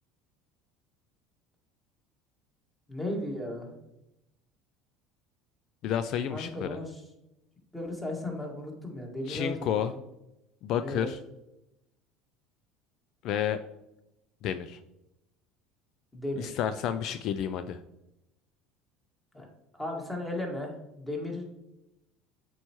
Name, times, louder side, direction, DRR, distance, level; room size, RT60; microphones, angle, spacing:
voice 1, 2.9-3.8 6.3-7.0 7.7-9.8 10.8-11.1 16.1-16.6 19.3-19.5 19.7-21.6, left 1 dB, 15° left, 0 dB, 1.9 m, -35 dB
voice 2, 5.8-6.8 9.3-9.9 10.6-11.2 13.2-13.6 14.4-14.8 16.4-17.8, left 9 dB, 60° left, 11 dB, 0.3 m, -30 dB
7.6 x 4.6 x 3.0 m, 0.89 s
supercardioid pair, 90°, 0 cm